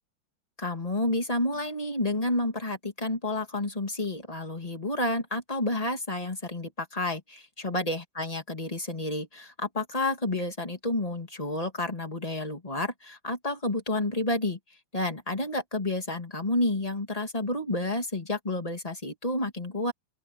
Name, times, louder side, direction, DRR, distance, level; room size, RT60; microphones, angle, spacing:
voice 1, 0.6-14.6 14.9-19.9, left 2 dB, 20° left, 2.7 m, -30 dB
open air
omnidirectional pair, 2.0 m